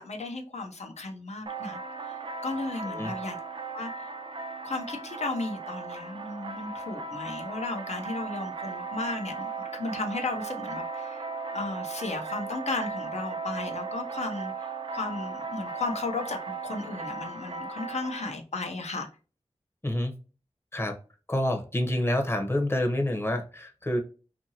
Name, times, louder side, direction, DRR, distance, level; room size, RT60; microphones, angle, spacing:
voice 1, 0.0-3.4 3.7-4.1 4.6-11.3 11.5-19.1, left 3 dB, 75° left, 4 dB, 0.7 m, -35 dB
sound 1, 1.5-18.3, right 4 dB, 50° right, 0.4 m, -37 dB
voice 2, 19.8-20.1 20.7-20.9 21.3-24.0, left 1 dB, 20° left, 4 dB, 0.8 m, -27 dB
2.7 x 2.6 x 2.8 m, 0.35 s
wide cardioid pair, 55°, 11 cm